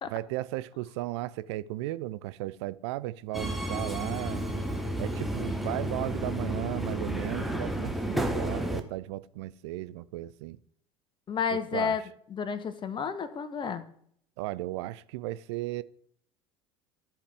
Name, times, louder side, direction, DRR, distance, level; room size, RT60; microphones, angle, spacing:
voice 1, 0.1-4.6 5.0-10.6 11.5-12.0 14.4-15.8, right 16 dB, 65° right, 0.4 m, -35 dB
Subway metro underground, 3.3-8.8, equal, ahead, 1.0 m, -32 dB
voice 2, 11.3-12.0 12.3-13.9, left 6 dB, 30° left, 0.9 m, -31 dB
13.5 x 4.9 x 3.4 m
hypercardioid pair, 75°, 15 cm